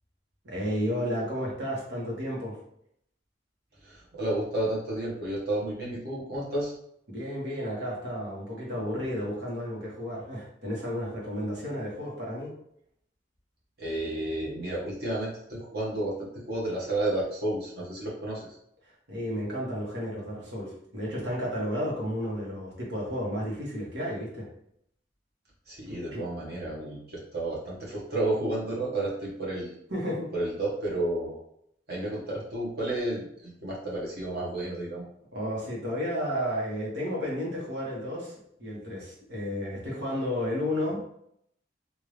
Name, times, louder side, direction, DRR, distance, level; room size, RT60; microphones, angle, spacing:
voice 1, 0.4-2.6 7.1-12.5 19.1-24.5 25.9-26.2 29.9-30.3 35.3-41.0, equal, 90° right, -4 dB, 1.5 m, -32 dB
voice 2, 3.8-6.7 13.8-16.1 16.5-18.5 25.7-29.8 30.3-31.4 31.9-35.0, right 1 dB, 60° right, -5 dB, 1.4 m, -31 dB
3.5 x 2.7 x 3.3 m, 0.72 s
head